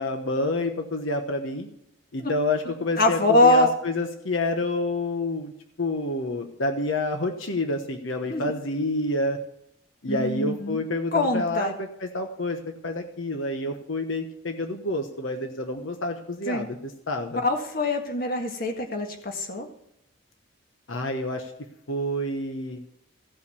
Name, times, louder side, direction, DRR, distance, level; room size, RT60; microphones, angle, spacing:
voice 1, 0.0-1.7 2.1-5.5 5.8-9.4 10.0-16.8 17.1-17.4 20.9-21.5 21.9-22.8, left 2 dB, 75° left, 4 dB, 1.1 m, -28 dB
voice 2, 3.0-3.7 8.3-8.5 10.1-10.8 11.1-11.7 16.5-16.7 17.4-19.7, left 2 dB, 45° left, 4 dB, 1.7 m, -23 dB
15.5 x 5.7 x 6.9 m, 0.77 s
head